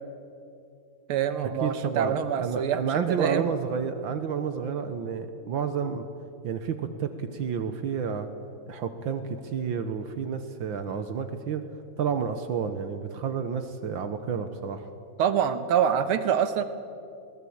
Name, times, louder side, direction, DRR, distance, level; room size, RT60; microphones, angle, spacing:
voice 1, 1.1-3.5 15.2-16.6, right 8 dB, 90° right, 11 dB, 2.0 m, -25 dB
voice 2, 1.6-6.0 6.4-8.3 8.7-11.6 12.0-14.9, right 6 dB, 70° right, 9 dB, 1.7 m, -30 dB
22.5 x 19.0 x 8.6 m, 2.6 s
omnidirectional pair, 2.3 m